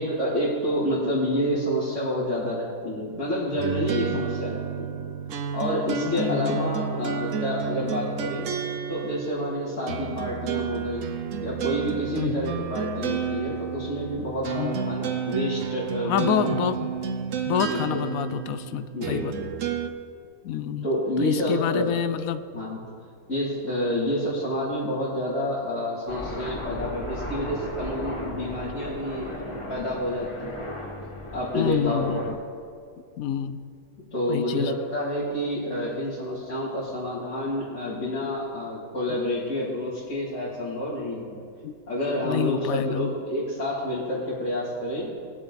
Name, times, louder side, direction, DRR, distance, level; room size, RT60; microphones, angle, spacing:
voice 1, 0.0-5.0 5.5-8.5 8.9-11.1 11.4-16.5 17.7-18.0 18.9-19.5 20.8-21.9 22.5-22.8 23.3-30.7 31.3-32.3 34.1-41.4 41.9-45.1, equal, 60° left, -11 dB, 3.3 m, -29 dB
sound 1, 3.6-19.9, right 7 dB, 70° right, 1.1 m, -31 dB
voice 2, 6.0-6.7 12.2-12.5 14.6-14.8 16.0-16.9 17.5-19.3 20.4-20.9 21.2-22.4 31.6-32.4 33.2-33.6 34.3-34.7 41.6-41.7 42.2-43.1, left 8 dB, 80° left, 12 dB, 1.0 m, -27 dB
Aircraft, 26.1-32.3, left 1 dB, 20° left, 1.4 m, -36 dB
19.5 x 7.4 x 4.1 m, 2.1 s
omnidirectional pair, 1.5 m